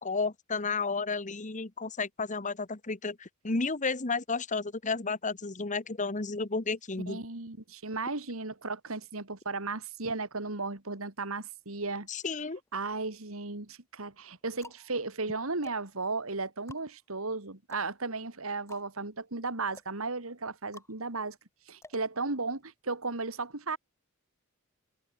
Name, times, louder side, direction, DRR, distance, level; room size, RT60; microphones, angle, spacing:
voice 1, 0.0-7.2 12.1-12.6, left 4 dB, 35° left, 1.3 m, -32 dB
voice 2, 7.1-12.1 12.7-21.4 21.7-23.8, right 3 dB, 70° right, 2.6 m, -35 dB
sound 1, 12.7-13.4 14.1-22.8, left 2 dB, 15° left, 7.3 m, -56 dB
head